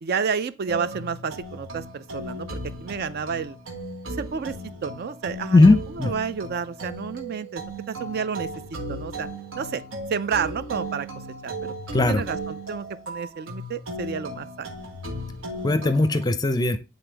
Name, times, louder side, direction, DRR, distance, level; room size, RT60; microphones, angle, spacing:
voice 1, 0.0-2.5 2.8-3.6 4.1-5.7 6.0-9.3 9.6-9.8 10.1-11.1 11.4-11.7 12.1-14.7, right 6 dB, 50° right, 0.4 m, -30 dB
sound 1, 0.7-16.2, right 1 dB, 70° right, 1.3 m, -36 dB
voice 2, 5.5-6.1 11.9-12.2 15.6-16.8, left 2 dB, 20° left, 0.5 m, -18 dB
7.8 x 4.0 x 3.3 m
head